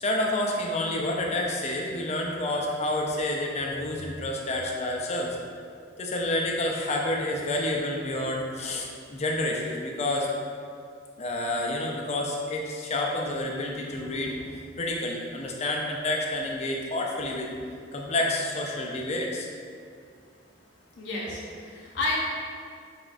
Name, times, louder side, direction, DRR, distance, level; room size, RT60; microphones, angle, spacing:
voice 1, 0.0-5.4 6.0-10.3 11.2-17.5 17.9-19.5, left 1 dB, 35° left, -1 dB, 0.4 m, -29 dB
voice 2, 20.9-22.2, left 2 dB, 65° left, -4 dB, 0.8 m, -31 dB
5.8 x 2.3 x 2.5 m, 2.3 s
head